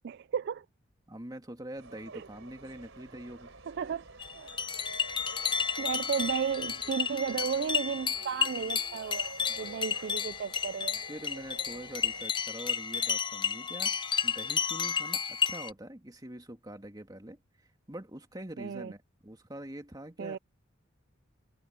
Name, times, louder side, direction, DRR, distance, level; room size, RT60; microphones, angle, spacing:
voice 1, 0.0-0.7 2.1-2.2 3.7-4.0 4.3-4.5 5.2-5.5 5.8-11.0 18.6-18.9 20.2-20.4, right 7 dB, 55° right, 0.3 m, -34 dB
voice 2, 1.1-3.5 9.5-9.8 11.1-17.4 17.9-20.4, right 1 dB, 20° right, 2.2 m, -44 dB
sound 1, 1.8-12.3, right 3 dB, 70° right, 3.6 m, -50 dB
sound 2, 4.2-15.7, left 7 dB, 25° left, 0.6 m, -32 dB
head